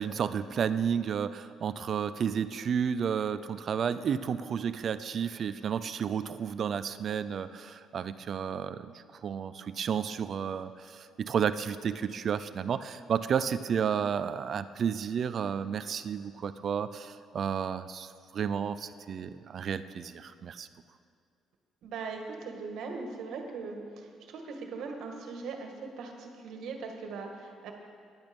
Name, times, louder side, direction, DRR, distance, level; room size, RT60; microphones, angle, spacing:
voice 1, 0.0-20.7, right 7 dB, 45° right, 13 dB, 0.4 m, -32 dB
voice 2, 21.8-27.7, right 4 dB, 70° right, 3 dB, 1.8 m, -40 dB
15.0 x 10.5 x 5.3 m, 2.2 s
cardioid pair, 145°, 0 cm